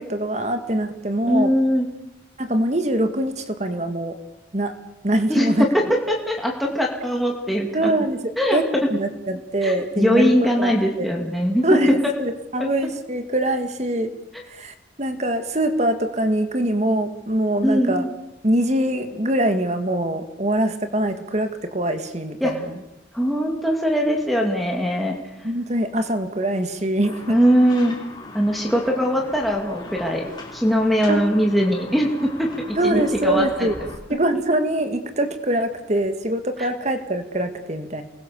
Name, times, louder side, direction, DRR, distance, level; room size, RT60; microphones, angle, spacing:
voice 1, 0.0-1.5 2.4-4.2 4.5-4.7 5.0-5.7 7.7-10.7 11.0-11.1 11.6-14.1 14.5-18.1 18.4-22.7 25.4-27.4 31.1-31.2 32.8-33.8 34.1-38.0, right 1 dB, 40° right, 8 dB, 2.0 m, -23 dB
voice 2, 1.3-1.9 5.3-5.5 5.7-7.9 8.4-8.6 9.6-11.6 17.6-18.1 22.4-22.5 23.1-25.2 27.3-28.0 28.3-33.7, equal, ahead, -1 dB, 2.5 m, -21 dB
sound 1, 27.0-34.0, left 2 dB, 25° left, 3.6 m, -39 dB
29.5 x 21.0 x 7.0 m, 0.96 s
head